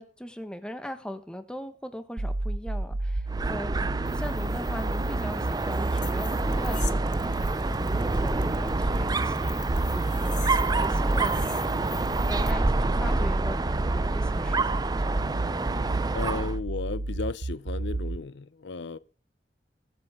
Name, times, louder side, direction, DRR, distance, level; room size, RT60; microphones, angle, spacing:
voice 1, 0.0-3.7 4.1-7.3 7.8-9.6 9.9-11.5 11.8-15.4, equal, 5° left, 1.4 m, -40 dB
sound 1, 2.2-18.2, right 2 dB, 85° right, 0.8 m, -31 dB
Dog, 3.3-16.6, right 2 dB, 20° right, 0.5 m, -28 dB
sound 2, 4.1-12.5, left 10 dB, 45° left, 1.1 m, -45 dB
voice 2, 16.1-19.0, left 3 dB, 80° left, 0.7 m, -34 dB
23.0 x 8.0 x 3.7 m
head